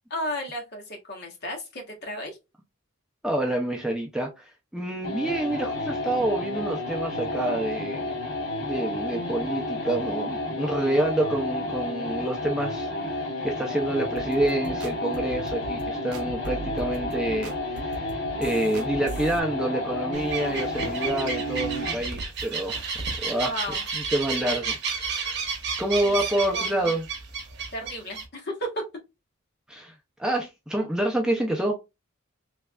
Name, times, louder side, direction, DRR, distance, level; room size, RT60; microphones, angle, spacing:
voice 1, 0.1-2.4 23.4-23.8 26.0-26.2 26.5-26.9 27.7-28.8, equal, 50° left, 1.3 m, -34 dB
voice 2, 3.2-8.1 8.6-22.8 23.2-25.5 25.8-27.0 29.7-31.7, right 1 dB, 5° right, 0.5 m, -28 dB
sound 1, 5.0-22.1, left 1 dB, 75° left, 1.2 m, -31 dB
sound 2, 14.2-19.4, right 3 dB, 80° right, 0.4 m, -39 dB
sound 3, 20.1-28.2, right 5 dB, 55° right, 0.9 m, -32 dB
3.3 x 3.2 x 2.3 m
head